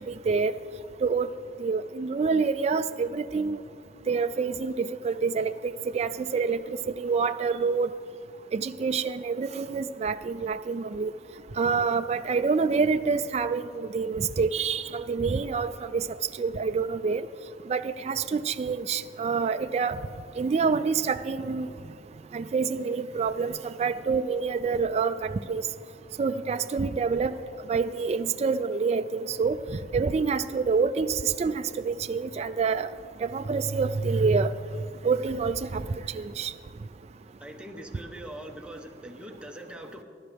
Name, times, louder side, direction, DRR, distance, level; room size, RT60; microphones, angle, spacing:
voice 1, 0.1-0.5 1.0-1.3 1.6-3.6 4.1-6.6 7.0-7.9 8.5-11.1 11.6-16.0 16.4-17.2 17.7-20.0 20.4-21.7 22.3-25.6 26.2-27.3 27.7-29.6 29.9-32.9 33.2-34.5 35.0-35.8 36.2-36.5, right 5 dB, 35° right, 9 dB, 0.3 m, -27 dB
voice 2, 37.4-40.0, right 1 dB, 5° right, 2 dB, 1.0 m, -42 dB
23.0 x 12.0 x 3.4 m, 2.4 s
head